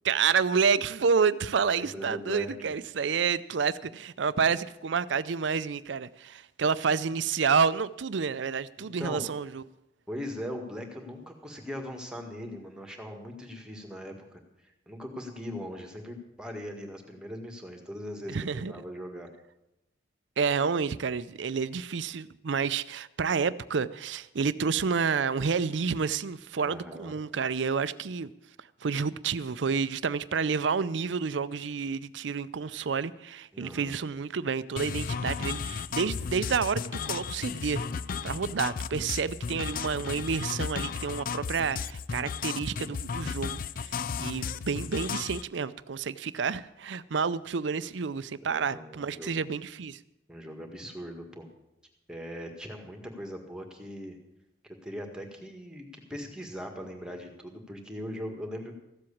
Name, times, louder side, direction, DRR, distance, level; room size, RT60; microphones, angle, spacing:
voice 1, 0.0-9.6 18.3-18.7 20.4-28.3 28.8-37.8 38.2-50.0, right 5 dB, 70° right, 0.5 m, -29 dB
voice 2, 1.8-2.7 8.8-9.3 10.1-14.4 14.9-19.3 26.6-27.1 33.5-33.9 48.4-49.5 50.3-51.5 52.1-54.2 54.6-58.7, equal, 5° right, 1.8 m, -40 dB
sound 1, 34.8-45.4, left 6 dB, 50° left, 0.4 m, -34 dB
15.0 x 7.7 x 8.6 m
head